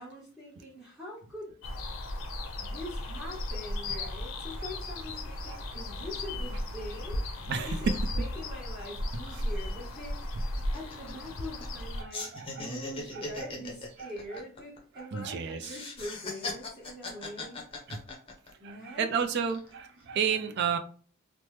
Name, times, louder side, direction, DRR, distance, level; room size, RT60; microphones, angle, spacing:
voice 1, 0.0-1.5 2.6-12.3 12.6-17.6 18.6-19.1, left 1 dB, 5° right, -6 dB, 0.8 m, -43 dB
sound 1, 1.6-12.0, left 1 dB, 75° left, 0.5 m, -35 dB
sound 2, 9.3-9.4 9.7-9.9 10.2-11.8 12.1-15.2 15.6-18.7 19.1-19.7, left 2 dB, 25° left, 0.6 m, -40 dB
voice 2, 12.0-12.6 15.1-15.6 17.9-18.0 19.0-20.8, right 7 dB, 55° right, 8 dB, 0.3 m, -31 dB
3.0 x 2.0 x 3.2 m, 0.43 s
head